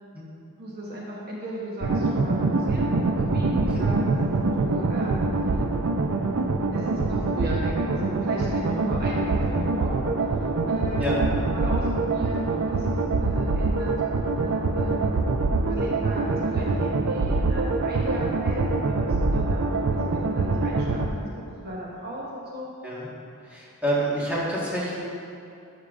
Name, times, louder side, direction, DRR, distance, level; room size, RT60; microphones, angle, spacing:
voice 1, 0.6-4.0 4.5-5.6 6.7-10.1 10.4-11.2 11.5-14.0 14.4-15.2 15.6-22.7, right 1 dB, 45° right, -4 dB, 1.0 m, -36 dB
sound 1, 1.8-21.1, right 3 dB, 65° right, 0.5 m, -24 dB
voice 2, 23.4-25.0, right 1 dB, 5° right, -8 dB, 1.5 m, -28 dB
11.5 x 6.6 x 2.5 m, 2.6 s
head